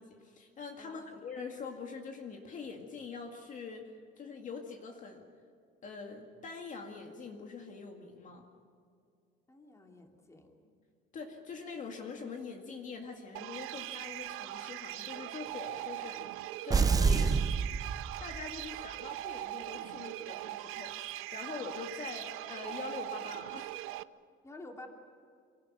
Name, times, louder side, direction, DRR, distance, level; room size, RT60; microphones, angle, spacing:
voice 1, 0.0-3.9 4.2-5.2 5.8-8.4 11.1-16.4 16.6-17.3 18.2-23.7, left 5 dB, 35° left, 2 dB, 2.1 m, -44 dB
voice 2, 0.8-1.1 9.5-10.7 24.4-24.9, left 2 dB, 15° left, 3 dB, 2.7 m, -51 dB
sound 1, 13.4-24.0, right 16 dB, 90° right, 0.7 m, -41 dB
sound 2, 16.7-18.6, right 5 dB, 15° right, 0.6 m, -28 dB
26.5 x 18.0 x 9.2 m, 2.3 s
cardioid pair, 165°, 21 cm